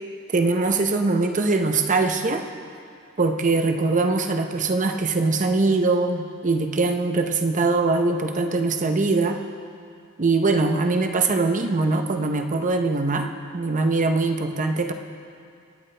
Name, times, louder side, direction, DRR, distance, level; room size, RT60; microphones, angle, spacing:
voice 1, 0.3-2.4 3.2-9.4 10.2-13.3 13.5-14.9, right 3 dB, 35° right, 5 dB, 0.8 m, -22 dB
24.5 x 9.6 x 3.3 m, 2.4 s
head